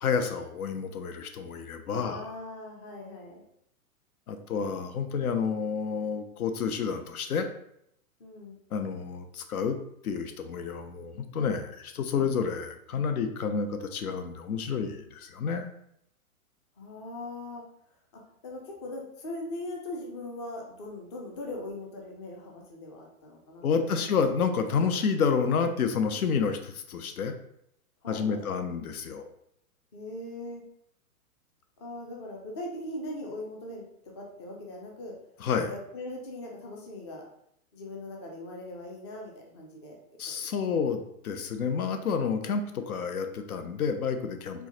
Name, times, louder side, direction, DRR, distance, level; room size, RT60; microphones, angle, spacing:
voice 1, 0.0-2.3 4.3-7.5 8.7-9.8 10.0-15.7 23.6-27.3 28.1-29.3 35.4-35.7 40.2-44.6, left 6 dB, 85° left, 8 dB, 0.6 m, -29 dB
voice 2, 1.9-3.4 8.2-8.6 16.8-17.6 18.1-23.6 23.9-24.2 28.0-28.5 29.9-30.6 31.8-33.8 34.2-35.2 35.6-37.2 37.7-40.0 40.4-40.8 44.5-44.7, left 1 dB, 20° left, 0 dB, 0.3 m, -40 dB
4.4 x 2.1 x 2.7 m, 0.73 s
hypercardioid pair, 125°, 43 cm